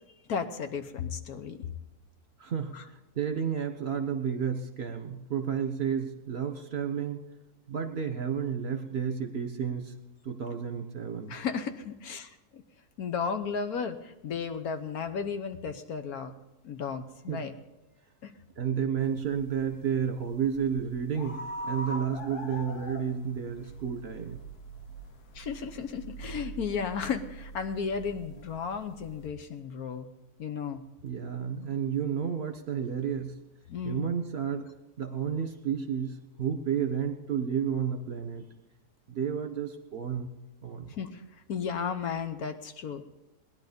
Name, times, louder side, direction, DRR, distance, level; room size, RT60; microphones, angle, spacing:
voice 1, 0.3-1.6 2.7-2.8 11.3-12.6 13.0-16.3 16.6-17.5 18.2-18.3 25.3-30.1 30.4-30.8 33.7-34.0 40.9-41.2 41.5-43.1, left 6 dB, 70° left, 9 dB, 1.5 m, -34 dB
voice 2, 2.4-7.2 7.7-9.9 10.2-11.4 17.3-17.5 18.6-24.4 31.0-33.3 33.8-34.7 35.0-38.4 39.1-40.3 40.6-40.9, right 7 dB, 45° right, 5 dB, 1.6 m, -31 dB
sound 1, 19.0-29.3, right 1 dB, 90° left, 1.7 m, -43 dB
19.0 x 11.0 x 5.3 m, 0.98 s
omnidirectional pair, 1.6 m